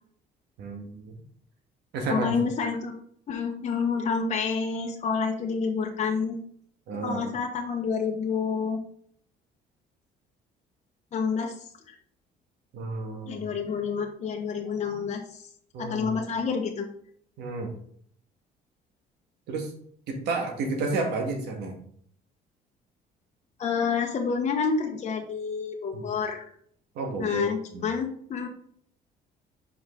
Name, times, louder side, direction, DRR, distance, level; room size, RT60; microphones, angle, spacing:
voice 1, 0.6-1.2 1.9-2.4 6.9-7.3 12.7-13.5 15.7-16.1 17.4-17.7 19.5-19.7 20.1-21.8 25.9-26.1 27.0-27.5 27.7-27.8, right 3 dB, 80° right, 3 dB, 1.7 m, -31 dB
voice 2, 2.1-2.9 3.3-6.4 7.0-8.8 11.1-11.5 11.9-12.0 13.3-15.2 15.8-16.9 23.6-26.4 27.2-28.5, left 5 dB, 40° left, 1 dB, 1.2 m, -28 dB
6.1 x 5.1 x 3.8 m, 0.63 s
cardioid pair, 110°, 17 cm